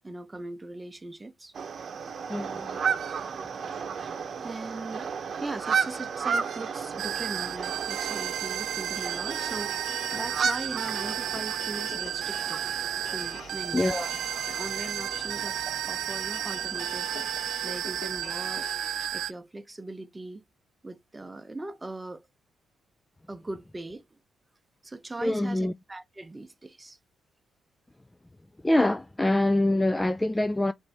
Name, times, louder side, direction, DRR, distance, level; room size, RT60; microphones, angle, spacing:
voice 1, 0.0-1.5 4.0-4.1 4.4-5.1 5.4-12.6 13.1-13.8 14.5-15.6 15.9-17.2 17.6-18.6 19.1-20.4 20.8-22.3 23.3-24.2 24.8-27.0, right 2 dB, 15° right, 0.7 m, -40 dB
sound 1, 1.5-18.3, right 6 dB, 50° right, 0.8 m, -34 dB
voice 2, 2.3-2.7 13.7-14.1 25.2-25.7 28.6-30.7, left 1 dB, 10° left, 0.3 m, -25 dB
sound 2, 7.0-19.3, right 11 dB, 75° right, 0.5 m, -33 dB
sound 3, 7.9-19.1, left 6 dB, 75° left, 1.2 m, -46 dB
6.0 x 2.6 x 3.3 m
cardioid pair, 90°, 0 cm